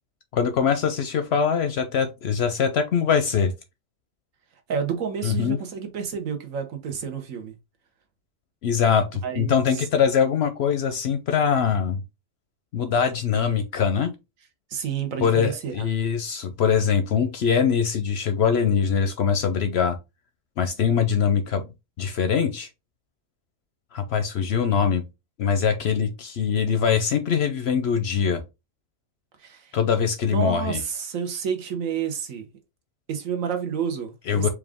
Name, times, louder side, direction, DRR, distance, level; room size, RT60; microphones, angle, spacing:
voice 1, 0.3-3.5 5.2-5.6 8.6-12.0 12.7-14.1 15.2-20.0 20.6-21.7 22.0-22.7 23.9-25.0 25.4-28.4 29.7-30.8 34.3-34.5, left 7 dB, 65° left, 0.7 m, -22 dB
voice 2, 4.7-7.5 9.2-9.8 14.7-15.9 29.4-29.8 30.3-32.5 33.1-34.5, right 7 dB, 75° right, 1.3 m, -30 dB
4.6 x 2.5 x 3.5 m
omnidirectional pair, 1.4 m